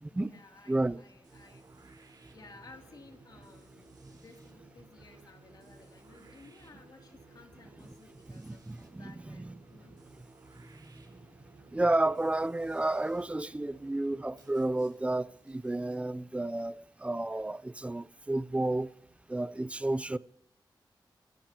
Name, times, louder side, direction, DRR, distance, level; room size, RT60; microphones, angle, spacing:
voice 1, 0.1-10.0, left 3 dB, 55° left, 2.9 m, -56 dB
voice 2, 0.7-1.0 8.4-9.6 11.7-18.9 19.3-20.2, right 2 dB, 15° right, 0.5 m, -31 dB
sound 1, 1.2-17.1, right 3 dB, 55° right, 4.5 m, -57 dB
28.0 x 14.5 x 3.0 m
wide cardioid pair, 95°, 8 cm